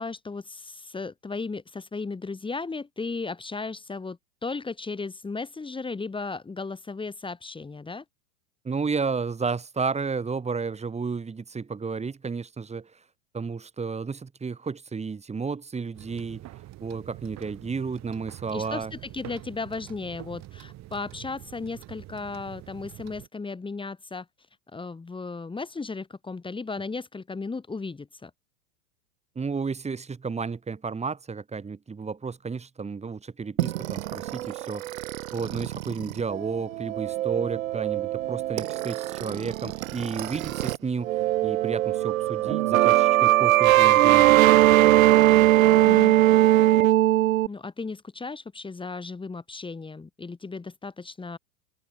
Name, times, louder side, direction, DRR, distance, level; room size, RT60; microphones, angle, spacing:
voice 1, 0.0-8.0 18.5-24.3 24.7-28.3 45.8-46.1 47.5-51.4, left 4 dB, 10° left, 4.9 m, -35 dB
voice 2, 8.6-12.9 13.3-16.4 16.8-18.9 29.3-35.0 35.3-44.4, right 5 dB, 15° right, 6.4 m, -32 dB
sound 1, 15.9-23.3, right 16 dB, 40° right, 4.1 m, -45 dB
sound 2, 33.6-40.8 41.0-47.5, right 15 dB, 70° right, 1.3 m, -21 dB
hypercardioid pair, 110°, 42 cm